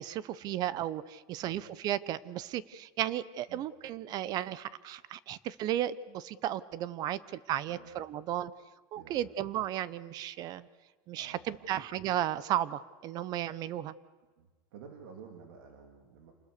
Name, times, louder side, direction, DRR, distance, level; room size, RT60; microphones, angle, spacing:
voice 1, 0.0-8.5 8.9-10.7 11.1-13.9, right 12 dB, 35° right, 19 dB, 0.7 m, -34 dB
voice 2, 7.7-8.0 8.9-9.3 11.2-11.9 14.4-16.3, right 6 dB, 80° right, 3 dB, 2.8 m, -52 dB
28.0 x 20.5 x 6.7 m, 1.3 s
supercardioid pair, 170°, 12 cm